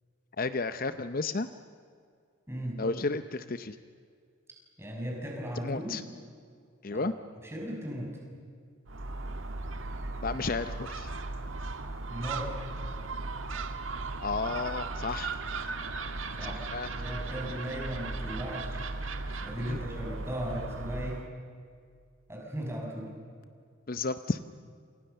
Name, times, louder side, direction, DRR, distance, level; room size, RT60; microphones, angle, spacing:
voice 1, 0.4-1.5 2.8-3.8 5.6-6.0 6.8-7.1 10.2-11.1 14.2-15.3 16.7-16.9 19.6-19.8 23.9-24.4, left 3 dB, 45° left, 11 dB, 0.7 m, -32 dB
voice 2, 2.5-2.8 4.8-6.0 6.9-8.2 12.0-12.5 16.4-16.6 17.0-18.8 19.3-21.2 22.3-23.1, equal, 10° right, -1 dB, 6.6 m, -37 dB
Gull seagull, 8.9-21.3, right 3 dB, 70° right, 1.7 m, -37 dB
29.0 x 28.0 x 6.8 m, 2.2 s
head